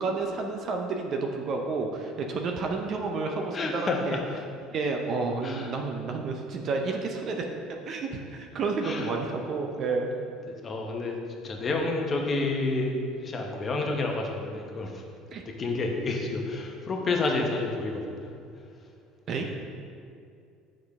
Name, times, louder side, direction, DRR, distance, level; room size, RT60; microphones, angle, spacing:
voice 1, 0.0-4.2 4.7-7.5 7.9-10.1 15.3-15.4 19.3-19.5, right 4 dB, 50° right, 2 dB, 0.6 m, -30 dB
voice 2, 3.5-4.2 5.4-5.7 8.8-9.1 10.5-15.0 15.4-18.3 19.3-19.6, left 3 dB, 35° left, 1 dB, 0.9 m, -30 dB
6.4 x 5.0 x 3.5 m, 2.4 s
supercardioid pair, 105°, 0 cm